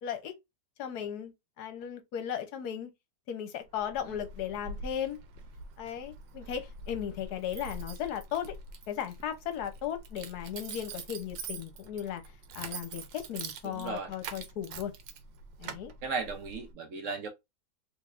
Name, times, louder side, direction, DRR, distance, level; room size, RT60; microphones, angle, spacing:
voice 1, 0.0-0.3 0.8-2.9 3.3-5.2 5.8-8.5 8.9-12.2 12.5-14.9 15.6-15.9, left 9 dB, 65° left, 1.2 m, -36 dB
Keys jangling, 3.6-16.7, right 4 dB, 85° right, 1.4 m, -45 dB
voice 2, 13.6-14.1 16.0-17.3, right 4 dB, 60° right, 0.9 m, -36 dB
3.4 x 3.1 x 2.4 m
omnidirectional pair, 1.9 m